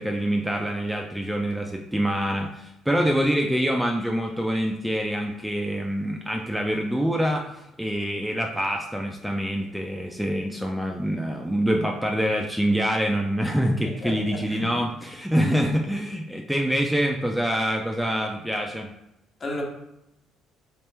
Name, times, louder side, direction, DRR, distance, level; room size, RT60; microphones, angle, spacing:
voice 1, 0.0-18.9, equal, 5° right, 1 dB, 0.4 m, -25 dB
voice 2, 14.0-14.7 15.3-15.4 19.4-19.6, left 2 dB, 40° left, 0 dB, 1.1 m, -33 dB
3.2 x 2.9 x 3.3 m, 0.85 s
supercardioid pair, 75°, 0 cm